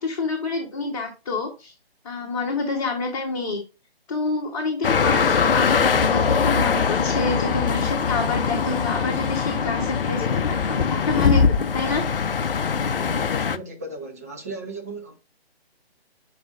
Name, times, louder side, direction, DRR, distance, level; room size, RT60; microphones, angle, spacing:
voice 1, 0.0-1.7 2.0-3.6 4.1-12.0, left 3 dB, 35° left, 1.2 m, -28 dB
sound 1, 4.8-13.6, left 6 dB, 60° left, 0.6 m, -22 dB
voice 2, 13.1-15.1, right 2 dB, 15° right, 0.5 m, -36 dB
7.6 x 5.0 x 2.5 m
figure-of-eight pair, 145°, 31 cm